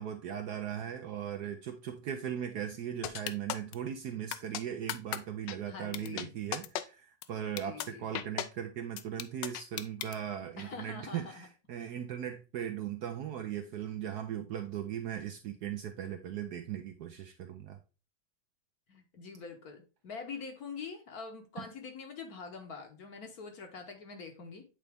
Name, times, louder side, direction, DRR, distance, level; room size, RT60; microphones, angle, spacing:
voice 1, 0.0-17.8 21.6-21.7, right 9 dB, 70° right, 1.0 m, -38 dB
sound 1, 3.0-3.7 4.3-4.6 4.9-5.2 5.5-5.6 5.9-6.2 6.5-6.8 7.2-7.3 7.6-7.9 8.1-8.5 9.0-10.1, left 12 dB, 75° left, 1.2 m, -35 dB
voice 2, 5.6-6.3 7.7-8.1 10.6-11.5 18.9-24.6, left 5 dB, 55° left, 1.3 m, -44 dB
8.3 x 3.9 x 3.4 m
omnidirectional pair, 2.2 m